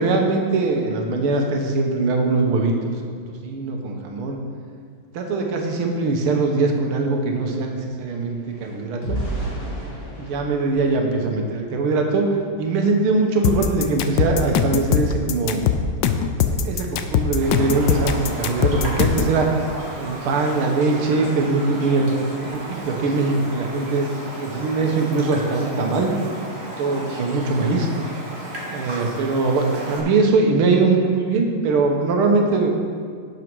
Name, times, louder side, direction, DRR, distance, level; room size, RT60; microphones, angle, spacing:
voice 1, 0.0-3.0 3.4-4.4 5.1-9.2 10.2-12.3 12.6-15.6 16.5-19.5 20.0-22.1 22.5-24.1 24.4-26.1 26.8-27.9 28.7-32.7, right 3 dB, 85° right, 2 dB, 1.9 m, -21 dB
sound 1, 6.6-11.9 12.4-12.6 13.0-13.2, right 1 dB, 40° left, 2.9 m, -34 dB
sound 2, 13.4-19.4, left 8 dB, 75° left, 1.1 m, -21 dB
Raindrop, 17.4-30.0, right 1 dB, 35° right, 1.5 m, -34 dB
11.5 x 6.3 x 4.7 m, 2.2 s
omnidirectional pair, 2.3 m